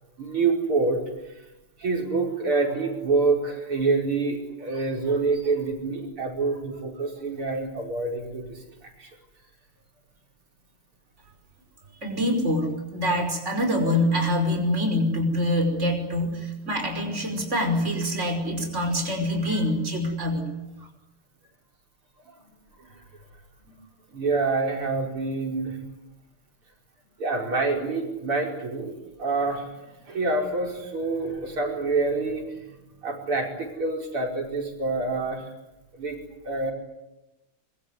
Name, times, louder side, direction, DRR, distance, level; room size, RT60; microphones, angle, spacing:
voice 1, 0.2-1.0 1.8-8.6 9.0-9.1 19.5-19.6 23.7-23.8 24.1-25.8 27.2-29.7 30.0-32.5 33.0-35.4 36.0-36.2 36.4-36.7, right 3 dB, 85° right, 1 dB, 6.1 m, -26 dB
voice 2, 12.0-20.5, left 1 dB, 30° right, 4 dB, 5.6 m, -25 dB
25.5 x 24.5 x 9.6 m, 0.96 s
omnidirectional pair, 2.3 m